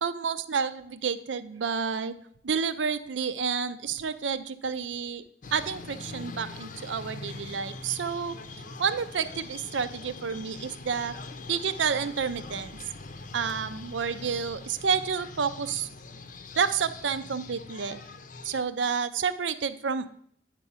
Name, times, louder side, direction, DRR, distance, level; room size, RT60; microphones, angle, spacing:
voice 1, 0.0-2.1 2.4-5.2 5.5-8.3 8.8-11.2 11.5-12.8 13.3-15.9 16.6-18.0 18.4-20.1, right 6 dB, 90° right, 12 dB, 0.6 m, -30 dB
sound 1, 5.4-18.6, left 3 dB, 50° left, 0.6 m, -43 dB
9.0 x 4.8 x 5.6 m, 0.66 s
head